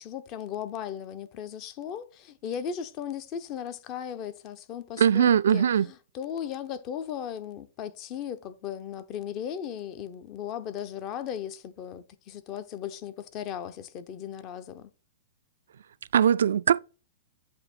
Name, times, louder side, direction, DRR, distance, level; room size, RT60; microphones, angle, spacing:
voice 1, 0.0-14.9, left 9 dB, 40° left, 0.7 m, -37 dB
voice 2, 5.0-5.9 16.1-16.8, right 8 dB, 70° right, 0.3 m, -21 dB
8.0 x 2.7 x 5.1 m
hypercardioid pair, 115°, 0 cm